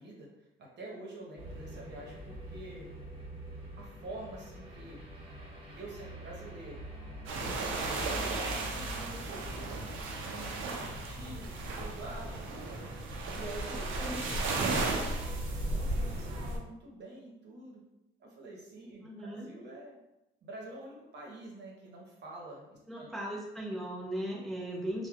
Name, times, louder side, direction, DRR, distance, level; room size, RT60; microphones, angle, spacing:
voice 1, 0.0-2.9 3.8-5.0 5.7-6.8 7.3-8.0 8.3-15.2 15.7-17.8 18.2-20.0 20.4-23.3, right 2 dB, 60° right, -3 dB, 0.9 m, -47 dB
sound 1, 1.4-16.5, equal, 25° right, 1.0 m, -45 dB
sound 2, 7.3-16.6, right 2 dB, 80° right, 0.5 m, -35 dB
voice 2, 19.0-19.5 22.9-25.1, right 1 dB, ahead, -5 dB, 0.7 m, -37 dB
3.3 x 2.2 x 2.3 m, 0.92 s
cardioid pair, 90°, 20 cm